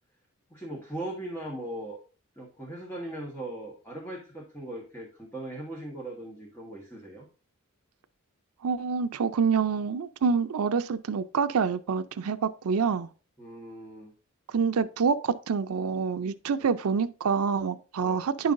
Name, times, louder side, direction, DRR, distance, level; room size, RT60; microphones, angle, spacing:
voice 1, 0.5-2.0 2.4-7.3 13.4-14.1 16.6-16.7 18.0-18.2, right 1 dB, 10° left, 1.4 m, -39 dB
voice 2, 8.6-13.1 14.5-18.5, right 5 dB, 80° right, 0.5 m, -27 dB
10.0 x 5.5 x 2.6 m
head